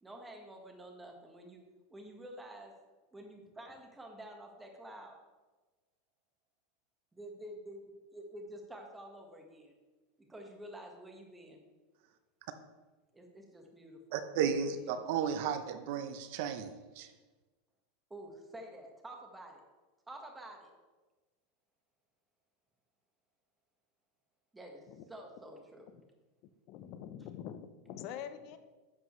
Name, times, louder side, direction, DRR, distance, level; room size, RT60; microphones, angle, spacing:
voice 1, 0.0-1.6 1.9-2.7 3.1-5.2 7.1-9.7 10.3-11.6 13.1-14.0 14.3-15.0 18.1-19.6 20.1-20.7 24.5-25.9, right 1 dB, 10° right, 2 dB, 1.4 m, -49 dB
voice 2, 14.1-17.1, right 7 dB, 60° right, 9 dB, 0.7 m, -34 dB
voice 3, 26.7-28.6, left 9 dB, 50° left, 10 dB, 0.6 m, -45 dB
11.0 x 7.5 x 3.2 m, 1.2 s
supercardioid pair, 140°, 0 cm